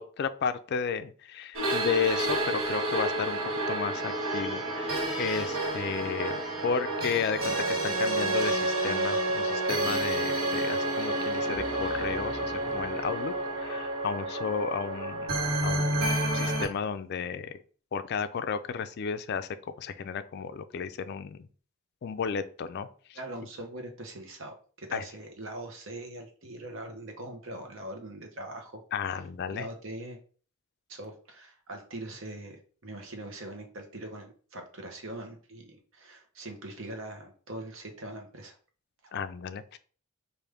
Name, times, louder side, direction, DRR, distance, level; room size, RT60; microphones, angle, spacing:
voice 1, 0.0-3.4 3.7-15.3 15.6-17.6 17.9-21.5 22.0-23.2 24.9-25.0 28.9-29.7 39.1-39.8, left 6 dB, 50° left, 11 dB, 0.3 m, -33 dB
sound 1, 1.5-16.7, right 2 dB, 85° right, 1.2 m, -30 dB
sound 2, 2.1-9.9 11.0-13.6, right 1 dB, ahead, 0.8 m, -44 dB
sound 3, 11.5-16.8, equal, 35° right, 2.0 m, -48 dB
voice 2, 23.1-28.8 29.5-30.2 30.9-38.6 39.0-39.1, right 1 dB, 65° right, 3 dB, 0.9 m, -42 dB
5.0 x 2.5 x 3.4 m, 0.42 s
head